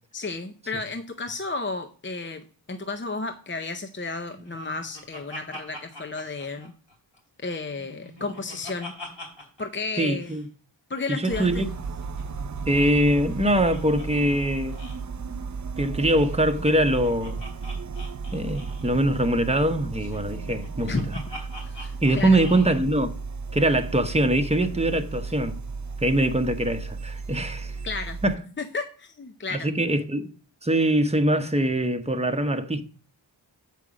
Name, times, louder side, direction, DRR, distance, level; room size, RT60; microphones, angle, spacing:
voice 1, 0.1-6.7 7.4-8.9 9.6-10.4 10.9-11.6 20.9-21.1 21.6-22.4 27.8-28.2 28.6-29.7, left 3 dB, 25° left, 0.6 m, -32 dB
Laughter, 4.3-7.2 7.5-9.6 9.9-10.0 10.2-10.4 11.7-14.1 14.3-14.4 14.7-15.0 16.2-19.0 20.0-22.8, left 1 dB, 65° left, 4.3 m, -43 dB
voice 2, 10.0-10.4 11.1-11.7 12.7-14.8 15.8-17.4 18.3-20.9 22.0-23.1 23.5-25.6 26.0-27.7 28.2-28.4 29.5-30.3 30.6-32.8, right 1 dB, 15° right, 0.9 m, -23 dB
sound 1, 11.3-28.4, right 4 dB, 40° right, 0.5 m, -34 dB
7.6 x 5.5 x 4.9 m
wide cardioid pair, 55°, 46 cm